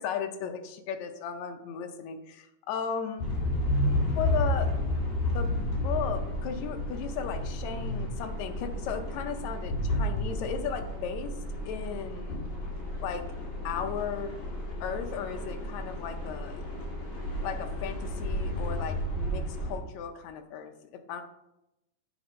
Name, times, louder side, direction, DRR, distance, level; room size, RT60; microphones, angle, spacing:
voice 1, 0.0-3.2 4.2-4.7 5.3-11.3 11.6-12.4 13.0-13.3 13.6-14.4 14.8-16.6 17.4-21.2, left 7 dB, 80° left, 6 dB, 1.6 m, -36 dB
sound 1, 3.2-19.8, left 1 dB, 55° left, 3.1 m, -32 dB
8.1 x 4.3 x 5.2 m, 0.89 s
omnidirectional pair, 4.0 m